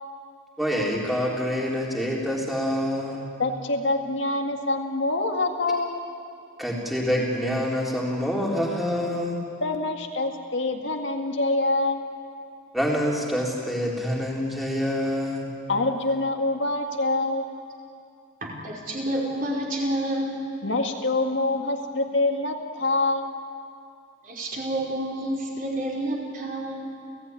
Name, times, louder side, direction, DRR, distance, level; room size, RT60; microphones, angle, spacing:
voice 1, 0.6-3.3 6.6-9.4 12.7-15.5, equal, ahead, -3 dB, 3.8 m, -26 dB
voice 2, 3.4-6.0 9.6-12.0 15.7-17.5 20.6-23.3, left 2 dB, 60° left, 3 dB, 2.0 m, -25 dB
voice 3, 18.4-20.3 24.2-26.8, right 1 dB, 40° right, -2 dB, 5.0 m, -29 dB
30.0 x 17.0 x 9.7 m, 2.5 s
head